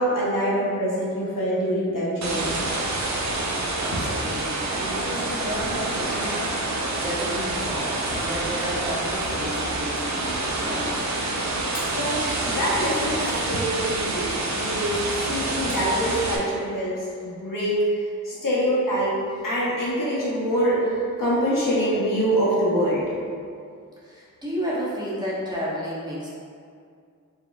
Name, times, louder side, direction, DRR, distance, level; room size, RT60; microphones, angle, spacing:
voice 1, 0.0-2.5 11.9-17.8 18.2-23.0, equal, 75° left, -7 dB, 1.1 m, -25 dB
sound 1, 2.2-16.4, right 2 dB, 55° right, 0.6 m, -27 dB
voice 2, 3.8-6.5 7.0-11.0 24.0-26.3, equal, 10° right, -8 dB, 1.2 m, -32 dB
sound 2, 10.0-10.7 11.7-12.1 13.2-13.8 15.7-16.0, equal, 15° left, 1.2 m, -41 dB
4.7 x 3.5 x 2.4 m, 2.3 s
wide cardioid pair, 50°, 33 cm